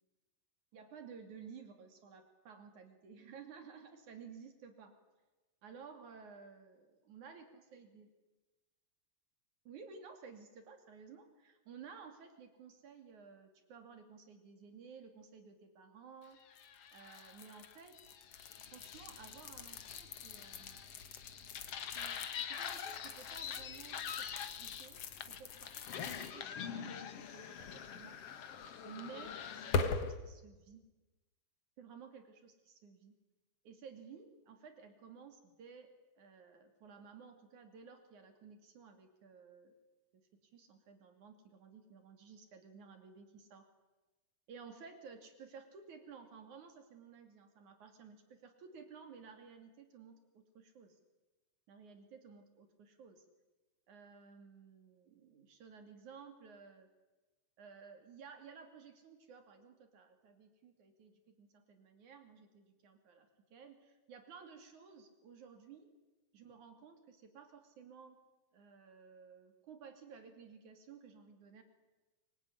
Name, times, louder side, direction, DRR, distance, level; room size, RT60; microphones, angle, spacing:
voice 1, 0.7-5.0 5.6-8.1 9.7-16.4 16.9-18.0 18.7-20.8 22.0-25.7 26.0-28.2 28.8-30.9 31.8-33.2 33.6-39.7 40.1-43.7 44.5-51.0 51.7-53.3 53.9-56.9 57.6-65.9 66.3-68.2 68.5-71.6, right 6 dB, 70° right, 7 dB, 4.1 m, -55 dB
sound 1, 16.5-30.2, left 5 dB, 55° left, 2.3 m, -42 dB
24.0 x 24.0 x 9.8 m, 1.1 s
omnidirectional pair, 3.5 m